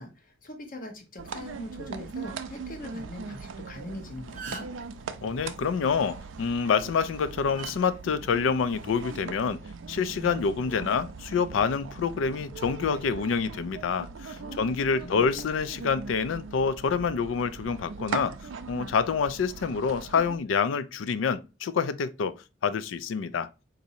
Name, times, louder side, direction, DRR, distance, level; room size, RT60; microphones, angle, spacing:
voice 1, 0.0-4.7 14.3-14.7 15.0-15.3, left 1 dB, 45° left, 0.9 m, -41 dB
sound 1, 1.2-20.4, right 5 dB, 85° right, 0.4 m, -40 dB
sound 2, 3.8-3.9 4.2-4.9 6.5-6.7 7.6-7.8 8.8-9.0, right 5 dB, 45° right, 0.8 m, -40 dB
voice 2, 5.2-9.6 9.9-18.3 18.7-23.5, left 5 dB, 80° left, 0.4 m, -27 dB
4.1 x 2.6 x 2.7 m
head